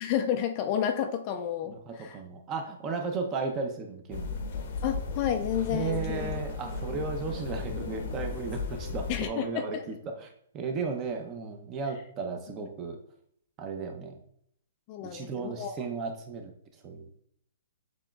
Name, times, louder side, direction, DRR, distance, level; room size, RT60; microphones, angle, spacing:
voice 1, 0.0-2.2 4.8-6.2 9.1-9.8 14.9-15.7, left 9 dB, 30° left, 7 dB, 0.3 m, -31 dB
voice 2, 1.7-4.3 5.7-13.0 13.6-14.2 15.0-16.5 16.8-17.1, right 4 dB, 20° right, 4 dB, 0.6 m, -35 dB
sound 1, 4.1-9.3, left 4 dB, 50° left, 0.7 m, -35 dB
7.2 x 3.0 x 2.3 m, 0.69 s
hypercardioid pair, 165°, 0 cm